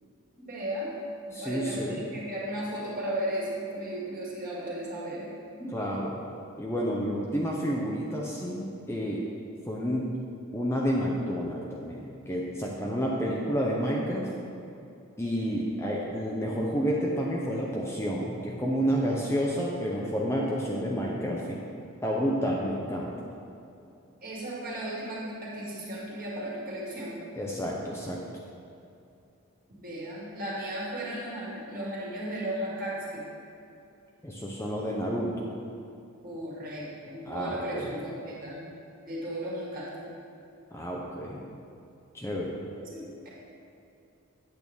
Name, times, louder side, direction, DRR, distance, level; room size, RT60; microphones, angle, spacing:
voice 1, 0.4-0.9 1.4-5.3 5.6-5.7 24.2-27.2 29.7-33.2 36.2-38.6 39.1-40.1 42.8-43.3, right 1 dB, 40° right, -6 dB, 2.1 m, -35 dB
voice 2, 1.3-2.0 5.7-6.2 6.6-9.3 9.7-10.1 10.5-14.3 15.2-21.6 22.0-23.1 27.4-28.2 34.2-35.5 37.3-37.9 40.7-41.4 42.1-42.6, equal, 10° left, -3 dB, 0.6 m, -30 dB
8.5 x 7.8 x 3.5 m, 2.7 s
head